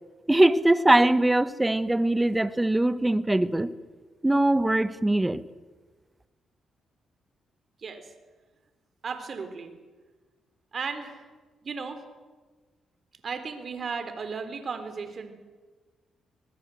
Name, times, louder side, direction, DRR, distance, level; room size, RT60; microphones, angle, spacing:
voice 1, 0.3-3.7 4.2-5.4, right 1 dB, 15° right, 14 dB, 1.4 m, -22 dB
voice 2, 9.0-9.7 10.7-11.2 11.6-12.0 13.2-15.3, right 5 dB, 55° right, 9 dB, 3.8 m, -35 dB
25.0 x 19.5 x 7.8 m, 1.3 s
supercardioid pair, 55°, 0 cm